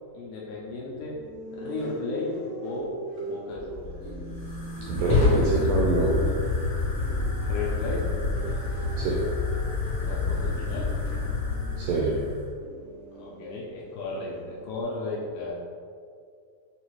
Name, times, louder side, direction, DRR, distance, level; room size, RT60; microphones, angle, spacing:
voice 1, 0.1-1.2 1.5-4.0 7.4-8.1 10.0-10.9 13.1-15.5, left 3 dB, 80° left, -4 dB, 1.8 m, -34 dB
sound 1, 1.1-14.8, right 2 dB, 65° right, 1.0 m, -41 dB
Fire, 3.6-12.5, left 3 dB, 55° left, 0.6 m, -28 dB
voice 2, 4.9-6.1 9.0-9.2 11.8-12.2, right 2 dB, 85° right, -4 dB, 1.7 m, -25 dB
5.4 x 2.5 x 3.0 m, 2.2 s
omnidirectional pair, 3.8 m